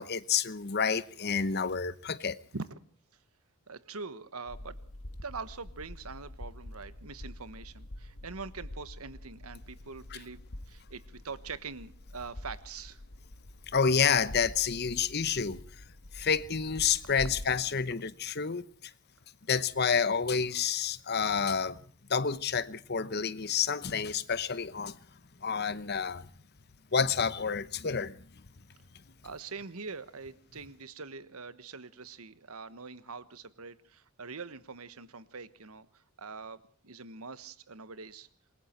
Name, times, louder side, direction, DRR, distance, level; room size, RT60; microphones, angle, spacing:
voice 1, 0.0-2.4 13.7-15.6 16.1-18.6 19.5-21.8 22.1-25.0 25.4-26.3 26.9-28.1, left 6 dB, 45° left, 0.9 m, -29 dB
voice 2, 3.7-4.8 5.2-13.0 29.2-38.3, right 4 dB, 80° right, 1.3 m, -44 dB
sound 1, 4.5-17.7, left 1 dB, 85° left, 1.7 m, -46 dB
27.0 x 21.5 x 4.4 m
head